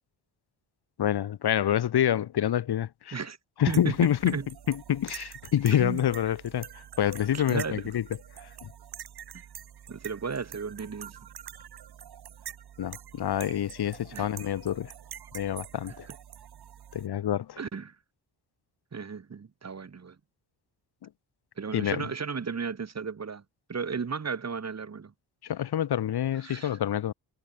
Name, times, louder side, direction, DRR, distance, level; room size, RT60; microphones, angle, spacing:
voice 1, 1.0-3.2 3.6-4.4 4.7-8.0 8.4-8.7 12.8-14.9 15.3-16.1 16.9-17.6 21.7-22.0 25.4-27.1, left 10 dB, 60° left, 1.6 m, -27 dB
sound 1, 3.7-17.1, right 9 dB, 60° right, 3.0 m, -46 dB
voice 2, 5.7-6.1 7.3-7.8 9.9-11.2 14.1-14.3 16.1-16.2 17.6-18.0 18.9-20.2 21.6-23.4 23.7-25.1 26.4-26.8, right 5 dB, 35° right, 5.4 m, -34 dB
cardioid pair, 125°, 43 cm